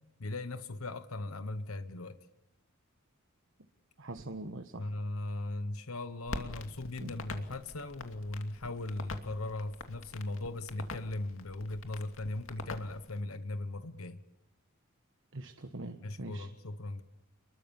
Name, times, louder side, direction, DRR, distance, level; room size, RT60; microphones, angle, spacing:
voice 1, 0.2-2.2 4.8-14.2 16.0-17.0, left 2 dB, 90° left, 1.2 m, -38 dB
voice 2, 4.0-4.9 7.0-7.1 15.3-16.5, right 2 dB, 65° right, 1.3 m, -43 dB
Crackle, 6.2-13.2, left 2 dB, 70° left, 2.6 m, -45 dB
29.5 x 22.0 x 7.2 m
head